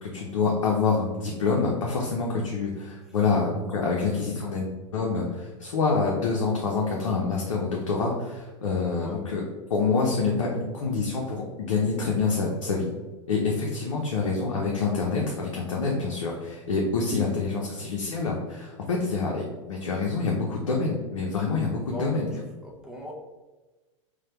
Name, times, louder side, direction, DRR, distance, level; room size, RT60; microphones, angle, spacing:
voice 1, 0.0-9.4 9.7-12.9 13.3-22.3, left 4 dB, 85° left, -2 dB, 0.7 m, -27 dB
voice 2, 21.9-23.1, left 1 dB, 5° right, -2 dB, 0.4 m, -39 dB
3.2 x 2.2 x 4.3 m, 1.2 s
hypercardioid pair, 115°, 17 cm